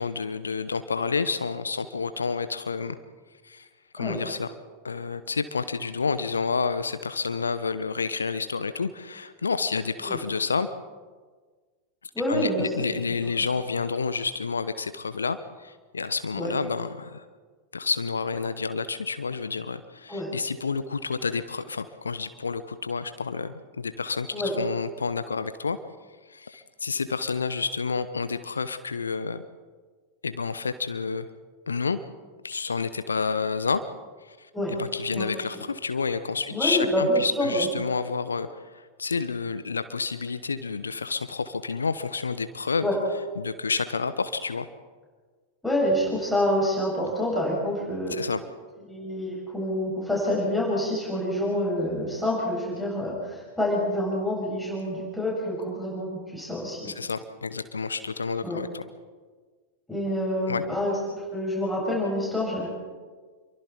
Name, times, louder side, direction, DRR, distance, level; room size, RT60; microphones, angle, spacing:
voice 1, 0.0-3.0 3.4-3.7 3.9-4.5 4.8-10.7 12.3-17.2 17.7-25.8 26.3-29.4 30.2-31.3 31.7-32.0 32.4-33.8 34.2-42.9 43.4-44.7 48.1-48.4 56.8-58.8 60.4-60.6, left 5 dB, 75° left, 12 dB, 0.9 m, -29 dB
voice 2, 12.1-13.0 16.4-16.5 20.1-20.3 24.3-24.5 34.5-34.7 35.1-35.6 36.5-37.7 42.8-43.0 45.6-48.2 48.9-56.9 58.4-58.6 59.9-62.7, equal, ahead, -5 dB, 7.7 m, -27 dB
28.5 x 23.5 x 4.5 m, 1.5 s
figure-of-eight pair, 90°, 0 cm